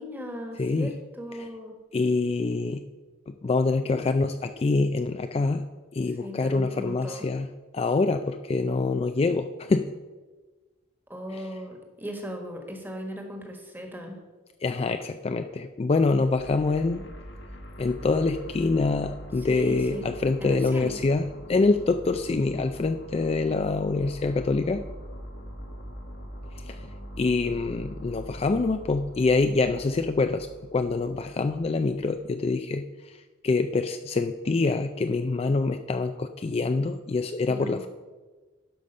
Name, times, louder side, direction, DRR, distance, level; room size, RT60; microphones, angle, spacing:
voice 1, 0.0-1.8 6.0-7.3 11.1-14.2 19.4-20.1 20.4-21.0 37.5-37.9, equal, 10° right, 3 dB, 1.4 m, -37 dB
voice 2, 0.6-0.9 1.9-2.8 3.3-5.6 5.9-7.5 7.7-9.9 11.3-11.5 14.6-17.1 17.8-24.8 26.6-26.8 27.2-33.2 33.4-37.9, left 3 dB, 30° left, 8 dB, 0.3 m, -25 dB
sound 1, 16.1-32.2, equal, 60° left, 1.2 m, -43 dB
11.5 x 5.2 x 5.4 m, 1.3 s
head